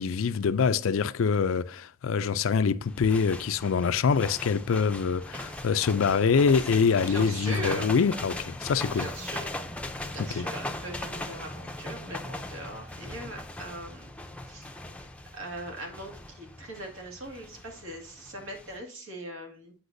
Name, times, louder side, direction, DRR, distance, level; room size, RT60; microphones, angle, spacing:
voice 1, 0.0-9.1 10.3-10.4, left 5 dB, 75° left, 0.4 m, -25 dB
sound 1, 2.9-18.8, left 1 dB, 5° left, 0.5 m, -39 dB
voice 2, 5.3-5.7 7.0-7.9 8.9-9.6 10.1-14.1 14.4-14.7 15.3-19.7, right 1 dB, 85° right, 2.0 m, -40 dB
7.9 x 5.9 x 2.6 m
head